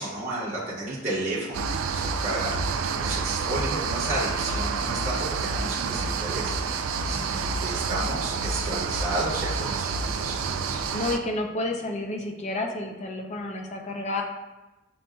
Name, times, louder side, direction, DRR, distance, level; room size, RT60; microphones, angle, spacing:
voice 1, 0.0-10.8, right 2 dB, 35° right, -8 dB, 1.0 m, -33 dB
sound 1, 1.5-11.2, right 4 dB, 90° right, 0.3 m, -28 dB
voice 2, 10.9-14.2, left 2 dB, 35° left, 2 dB, 0.5 m, -30 dB
6.8 x 2.7 x 2.3 m, 1.1 s
head